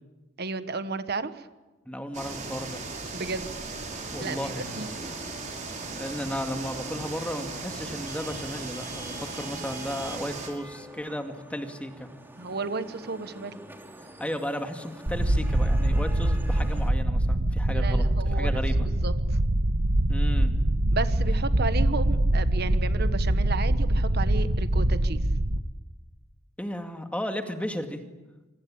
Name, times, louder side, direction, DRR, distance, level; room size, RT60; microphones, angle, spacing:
voice 1, 0.4-1.5 3.1-3.5 4.2-4.9 12.4-13.6 17.7-19.4 20.9-25.3, right 3 dB, 55° right, 11 dB, 1.4 m, -33 dB
voice 2, 1.9-2.8 4.1-4.7 5.0-5.1 5.9-12.1 14.2-18.9 20.1-20.5 26.6-28.0, equal, 5° left, 5 dB, 2.3 m, -34 dB
sound 1, 2.1-10.5, right 3 dB, 40° right, 5.5 m, -37 dB
Vehicle horn car horn honking / Traffic noise roadway noise, 4.1-16.9, equal, 10° right, 2.9 m, -47 dB
sound 2, 15.1-25.6, right 1 dB, 75° right, 1.5 m, -24 dB
26.5 x 25.0 x 8.8 m, 1.2 s
head